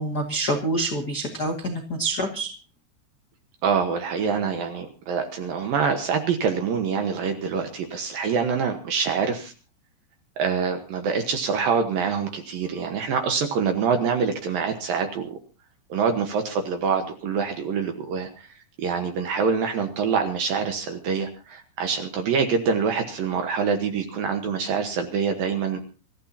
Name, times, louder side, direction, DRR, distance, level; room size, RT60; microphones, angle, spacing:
voice 1, 0.0-2.6, right 1 dB, 65° left, 2 dB, 0.9 m, -27 dB
voice 2, 3.6-9.5 10.4-15.4 15.9-18.5 18.8-25.9, right 6 dB, 70° right, 6 dB, 2.4 m, -25 dB
26.0 x 14.0 x 2.8 m, 0.34 s
omnidirectional pair, 5.4 m